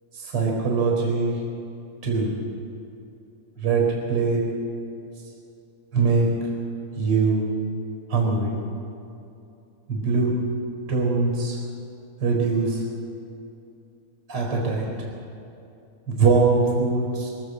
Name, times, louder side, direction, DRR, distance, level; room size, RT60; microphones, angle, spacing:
voice 1, 0.1-1.4 2.0-2.3 3.6-4.4 5.9-6.3 7.0-7.4 8.1-8.6 9.9-10.3 10.9-11.6 12.2-12.8 14.3-14.9 16.1-17.3, right 4 dB, 20° right, -1 dB, 4.3 m, -22 dB
24.0 x 17.0 x 8.0 m, 2.7 s
omnidirectional pair, 5.8 m